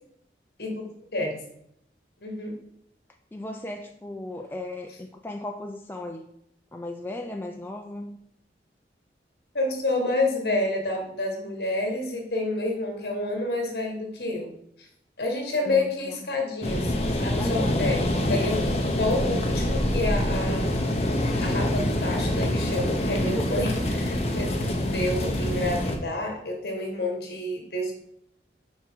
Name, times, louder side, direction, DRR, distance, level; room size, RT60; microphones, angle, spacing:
voice 1, 1.1-1.4 2.2-2.5 9.5-14.5 14.8-14.9 15.2-18.6 19.0-20.7 21.0-27.9, left 2 dB, 60° left, 1 dB, 1.5 m, -29 dB
voice 2, 3.3-6.3 6.7-8.2 15.7-16.1 17.4-17.9 23.3-23.4, left 1 dB, 10° left, 3 dB, 0.3 m, -36 dB
sound 1, 16.6-26.0, left 1 dB, 35° left, 0.8 m, -25 dB
5.5 x 4.9 x 4.5 m, 0.74 s
head